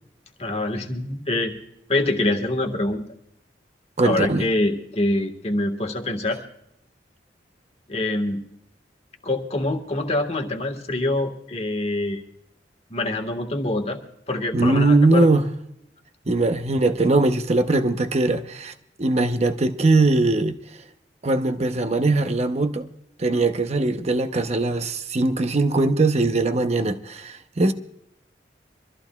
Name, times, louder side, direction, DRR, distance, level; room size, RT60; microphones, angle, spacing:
voice 1, 0.4-1.5 1.9-3.0 4.0-6.4 7.9-8.4 9.2-12.2 12.9-14.0 14.3-15.3, left 2 dB, 35° left, 1.5 m, -25 dB
voice 2, 4.0-4.5 14.5-15.5 16.3-18.7 19.0-20.6 21.2-22.9 23.2-27.7, right 2 dB, 40° right, 0.8 m, -20 dB
25.5 x 14.0 x 2.3 m
head